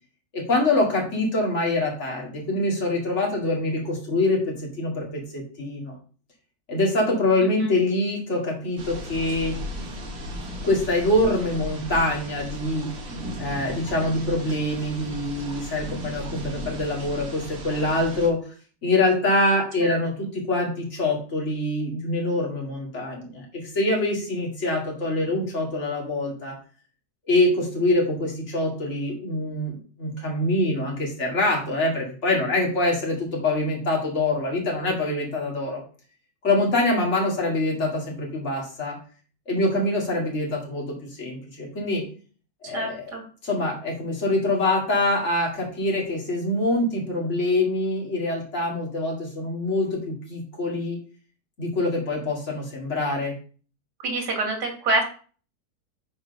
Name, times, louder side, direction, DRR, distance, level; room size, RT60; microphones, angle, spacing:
voice 1, 0.3-6.0 6.7-9.6 10.6-12.9 13.4-18.4 18.8-26.5 27.3-35.8 36.4-39.0 39.5-42.0 42.6-43.1 43.4-51.0 51.6-53.3, left 2 dB, 45° left, -2 dB, 2.6 m, -25 dB
sound 1, 8.8-18.3, equal, 65° right, 1.9 m, -36 dB
voice 2, 42.7-43.2 54.0-55.0, right 2 dB, 85° right, 2 dB, 2.6 m, -26 dB
6.7 x 4.6 x 5.3 m, 0.41 s
omnidirectional pair, 1.8 m